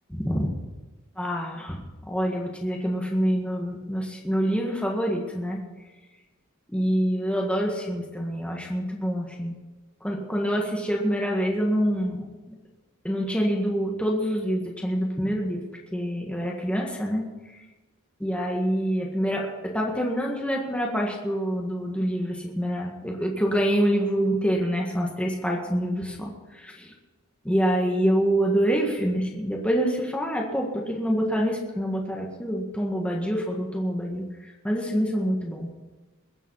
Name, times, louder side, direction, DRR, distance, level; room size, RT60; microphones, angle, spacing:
voice 1, 0.1-0.5 1.2-1.8 2.1-5.6 6.7-9.5 10.0-12.5 13.0-15.6 15.9-17.3 18.2-26.9 27.4-35.7, equal, 5° left, -1 dB, 1.7 m, -26 dB
22.0 x 7.3 x 5.7 m, 1.2 s
head